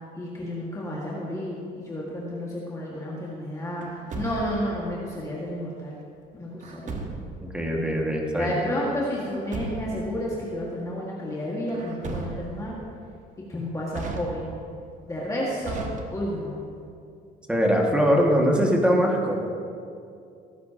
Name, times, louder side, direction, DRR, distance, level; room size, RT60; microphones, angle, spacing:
voice 1, 0.2-3.9 4.1-6.0 6.3-7.0 8.4-12.8 13.5-14.5 15.1-16.5, equal, 20° left, -5 dB, 1.8 m, -31 dB
Truck, 3.8-4.8 6.6-7.5 9.1-10.1 11.7-12.7 13.9-14.7 15.6-16.5, right 3 dB, 45° right, 1.3 m, -36 dB
voice 2, 7.4-8.6 17.5-19.3, equal, 5° right, -1 dB, 1.9 m, -22 dB
17.5 x 10.5 x 2.9 m, 2.4 s
cardioid pair, 110°, 17 cm